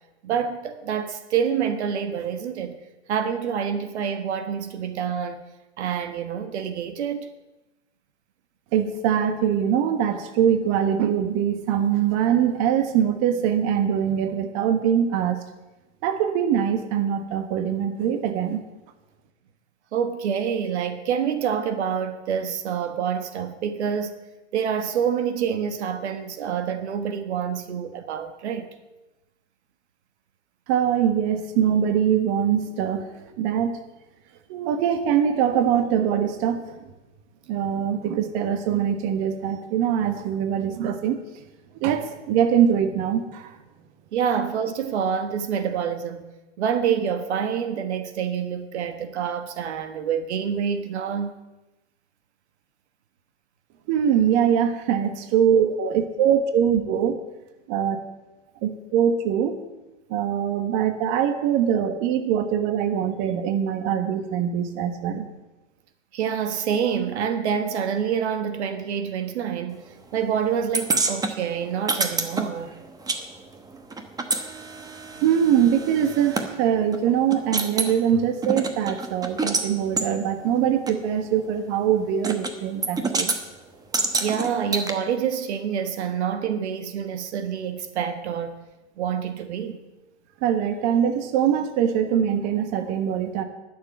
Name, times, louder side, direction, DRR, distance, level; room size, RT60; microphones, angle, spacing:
voice 1, 0.2-2.8 3.1-5.4 5.8-7.3 19.9-24.2 24.5-28.7 44.1-46.3 46.6-51.4 66.1-69.8 70.1-72.7 84.2-88.6 89.0-89.8, right 7 dB, 70° right, 1.4 m, -27 dB
voice 2, 8.7-15.4 16.0-18.6 30.7-33.1 33.4-33.8 34.5-36.9 37.5-41.4 41.7-43.6 53.9-57.1 57.7-58.0 58.6-59.6 60.1-65.3 75.2-83.3 90.4-93.4, right 9 dB, 45° right, 1.4 m, -23 dB
sound 1, 70.7-73.2 73.5-76.5 76.9-77.0 77.3-77.9 78.4-79.7 80.0-80.1 80.9-81.0 82.2-82.5 82.8-83.4 83.9-84.9, right 3 dB, 10° right, 1.0 m, -27 dB
11.5 x 7.0 x 9.2 m
hypercardioid pair, 125°, 35 cm